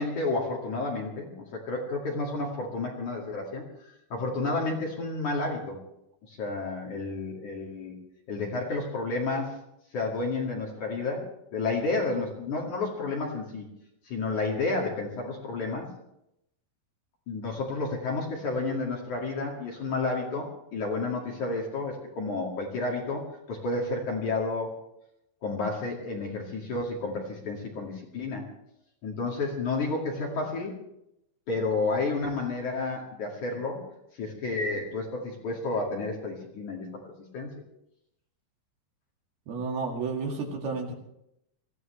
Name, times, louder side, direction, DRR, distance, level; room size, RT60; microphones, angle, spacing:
voice 1, 0.0-3.6 4.1-5.8 6.3-7.9 8.3-9.6 9.9-11.2 11.5-13.7 14.1-15.9 17.3-24.7 25.4-28.5 29.0-30.7 31.5-33.8 34.1-37.5, left 3 dB, 50° left, -2 dB, 3.1 m, -31 dB
voice 2, 39.5-40.9, right 4 dB, 60° right, 0 dB, 3.7 m, -31 dB
23.0 x 16.0 x 3.3 m, 0.80 s
omnidirectional pair, 5.4 m